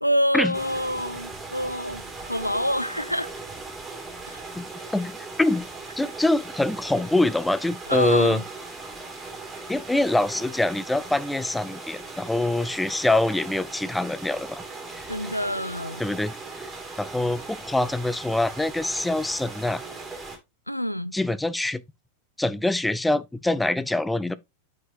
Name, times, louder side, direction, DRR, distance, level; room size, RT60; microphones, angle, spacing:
voice 1, 0.0-3.3 4.3-4.4 7.9-8.4 15.1-16.0 20.7-21.1, equal, 90° left, 0.4 m, -27 dB
sound 1, 0.5-20.4, right 3 dB, 15° right, 2.2 m, -39 dB
voice 2, 6.0-8.4 9.7-14.6 14.9-15.1 16.0-16.7 17.0-19.8 21.1-21.8 22.4-24.3, left 2 dB, 5° left, 0.4 m, -24 dB
9.2 x 4.7 x 2.7 m
figure-of-eight pair, 90°, 0 cm